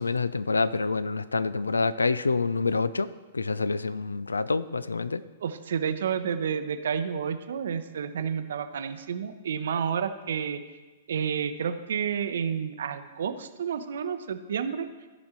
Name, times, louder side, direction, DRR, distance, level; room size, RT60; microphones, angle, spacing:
voice 1, 0.0-5.2, left 4 dB, 75° left, 16 dB, 0.4 m, -27 dB
voice 2, 5.4-10.6 11.1-14.9, right 7 dB, 60° right, 10 dB, 0.6 m, -30 dB
14.0 x 5.3 x 4.3 m, 1.2 s
figure-of-eight pair, 110°, 0 cm